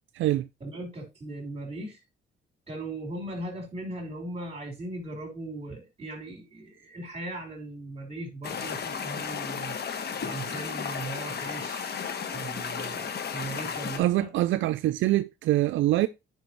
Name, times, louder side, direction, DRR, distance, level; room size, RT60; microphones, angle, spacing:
voice 1, 0.6-2.0 2.7-9.8 10.2-14.3, right 2 dB, 30° right, 4.0 m, -38 dB
sound 1, 8.4-14.0, left 6 dB, 55° left, 1.2 m, -34 dB
voice 2, 14.0-16.1, right 15 dB, 75° right, 0.4 m, -24 dB
9.3 x 5.3 x 3.1 m
cardioid pair, 90°, 20 cm